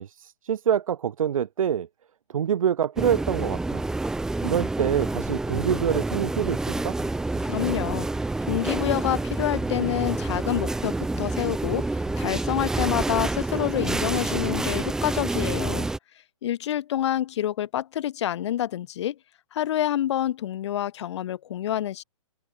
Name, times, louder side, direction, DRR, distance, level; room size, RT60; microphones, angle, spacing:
voice 1, 0.0-1.9 2.3-3.8 4.4-7.0, right 9 dB, 65° right, 1.6 m, -26 dB
sound 1, 3.0-16.0, right 2 dB, 5° right, 0.8 m, -28 dB
sound 2, 6.7-7.8 9.4-10.4 11.1-12.2 13.9-14.8 15.5-15.6, left 14 dB, 20° left, 6.9 m, -45 dB
voice 2, 7.4-8.1 8.5-15.9 16.4-19.2 19.5-22.0, left 11 dB, 50° left, 1.6 m, -27 dB
open air
hypercardioid pair, 150°, 19 cm